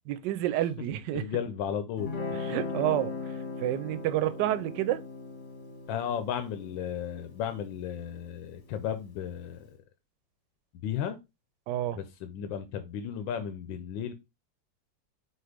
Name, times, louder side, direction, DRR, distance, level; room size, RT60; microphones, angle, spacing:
voice 1, 0.1-1.3 2.3-5.0 11.7-12.0, right 13 dB, 75° right, 1.2 m, -29 dB
voice 2, 1.1-2.1 5.9-9.7 10.8-11.2 11.9-14.1, left 9 dB, 85° left, 1.5 m, -34 dB
Guitar, 2.0-9.1, left 4 dB, 30° left, 1.1 m, -39 dB
4.6 x 4.3 x 5.0 m
omnidirectional pair, 2.0 m